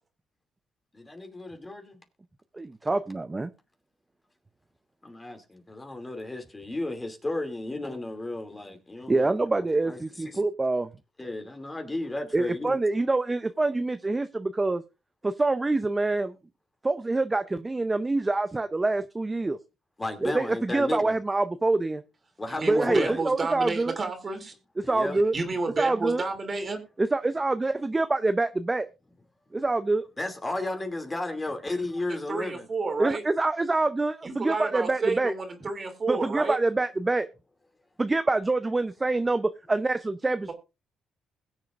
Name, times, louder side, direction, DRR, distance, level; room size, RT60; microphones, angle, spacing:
voice 1, 0.9-2.0 5.0-10.4 11.2-12.8 20.0-21.2 22.4-23.2 24.8-25.2 30.2-32.7, left 2 dB, 20° left, 2.6 m, -34 dB
voice 2, 2.6-3.5 9.1-10.9 12.3-14.8 15.2-16.3 16.8-19.6 20.2-22.0 22.7-23.9 24.8-25.3 25.8-26.2 27.0-28.9 29.5-30.0 33.0-35.3 36.1-37.3 38.0-40.5, right 2 dB, 20° right, 0.6 m, -26 dB
voice 3, 22.5-24.5 25.3-26.8 32.1-33.2 34.2-36.6, right 3 dB, 35° right, 2.8 m, -31 dB
21.5 x 7.3 x 2.5 m
cardioid pair, 90°, 0 cm